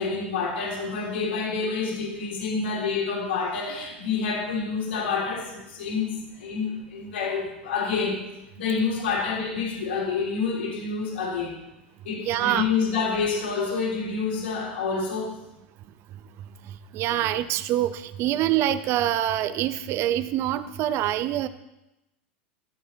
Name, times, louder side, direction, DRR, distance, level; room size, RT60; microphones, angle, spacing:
voice 1, 0.0-8.2 8.6-11.6 12.0-15.4, left 5 dB, 75° left, 3.6 m, -28 dB
voice 2, 12.2-12.7 16.9-21.5, right 12 dB, 45° right, 0.8 m, -25 dB
13.0 x 13.0 x 2.9 m
hypercardioid pair, 100°, 6 cm